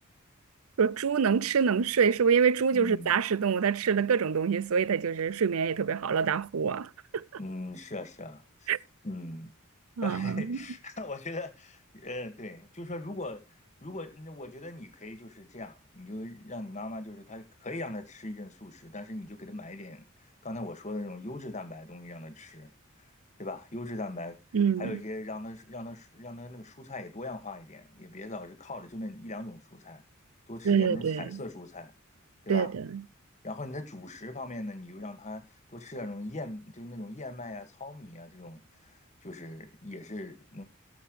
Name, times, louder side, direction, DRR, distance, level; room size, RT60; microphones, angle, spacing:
voice 1, 0.8-7.2 8.7-8.8 10.0-10.6 24.5-25.0 30.6-31.4 32.5-33.0, right 6 dB, 75° right, 0.5 m, -26 dB
voice 2, 2.7-3.1 7.4-8.7 9.0-9.5 10.0-13.4 13.8-20.1 20.4-22.7 23.4-24.4 24.8-30.0 30.5-31.9 32.4-32.7 33.4-35.4 35.7-38.6 38.9-40.6, left 2 dB, 35° left, 1.9 m, -40 dB
17.0 x 7.3 x 3.2 m
head